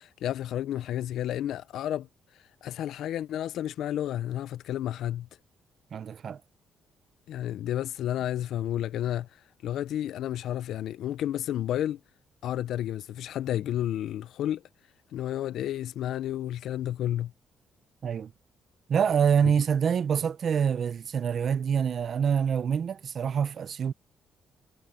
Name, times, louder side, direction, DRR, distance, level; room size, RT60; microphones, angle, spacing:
voice 1, 0.0-2.1 2.3-5.3 7.3-12.0 12.4-14.6 15.1-17.3, left 11 dB, 80° left, 0.5 m, -31 dB
voice 2, 5.9-6.4 18.0-18.3 18.9-23.9, right 7 dB, 55° right, 0.8 m, -26 dB
cardioid pair, 90°, 0 cm